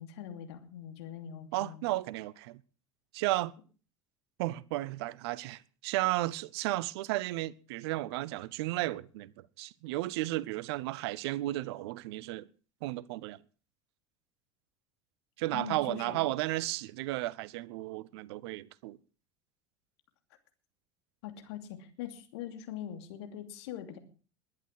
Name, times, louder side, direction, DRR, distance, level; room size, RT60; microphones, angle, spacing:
voice 1, 0.0-1.8 15.5-16.2 21.2-24.0, left 10 dB, 60° left, 2.8 m, -42 dB
voice 2, 1.5-2.6 3.1-3.5 4.4-9.3 9.6-12.5 12.8-13.4 15.4-19.0, right 17 dB, 55° right, 0.7 m, -33 dB
21.0 x 10.5 x 4.7 m
figure-of-eight pair, 75°, 16 cm